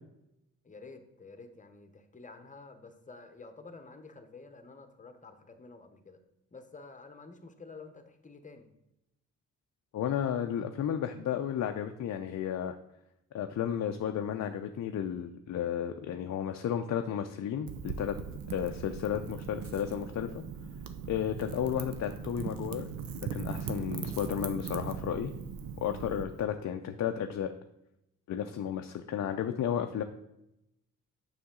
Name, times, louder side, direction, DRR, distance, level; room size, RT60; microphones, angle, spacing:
voice 1, 0.6-6.2 6.5-8.7, left 3 dB, 20° left, 8 dB, 0.9 m, -50 dB
voice 2, 9.9-12.8 13.3-18.1 18.5-20.4 21.1-22.9 23.2-25.3 25.8-27.5 28.3-30.0, left 9 dB, 55° left, 6 dB, 0.5 m, -33 dB
Wind / Fire, 17.7-26.2, right 6 dB, 75° right, 0.8 m, -39 dB
6.9 x 5.8 x 3.8 m, 0.87 s
cardioid pair, 75°, 35 cm